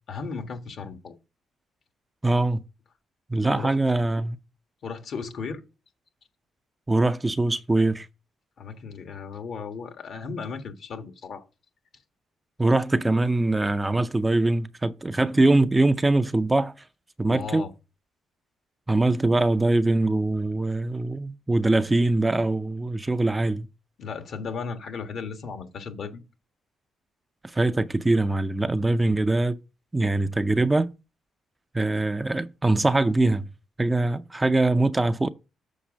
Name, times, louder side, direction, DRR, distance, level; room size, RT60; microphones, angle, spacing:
voice 1, 0.1-1.2 3.3-3.8 4.8-5.6 8.6-11.4 17.3-17.7 24.0-26.2, left 5 dB, 60° left, 1.4 m, -35 dB
voice 2, 2.2-2.6 3.3-4.4 6.9-8.1 12.6-16.7 17.2-17.7 18.9-23.7 27.5-29.6 29.9-30.9 31.7-33.5 33.8-35.3, right 2 dB, 15° right, 0.5 m, -22 dB
7.1 x 4.8 x 6.2 m
cardioid pair, 90°, 0 cm